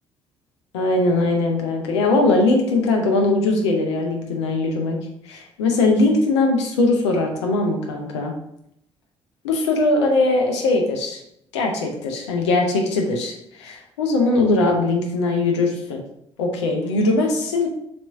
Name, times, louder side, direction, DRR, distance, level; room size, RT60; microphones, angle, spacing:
voice 1, 0.7-5.0 5.3-8.3 9.4-11.2 11.5-16.0 16.4-17.7, left 2 dB, 80° left, 1 dB, 0.7 m, -20 dB
4.2 x 3.0 x 3.4 m, 0.76 s
figure-of-eight pair, 45°, 15 cm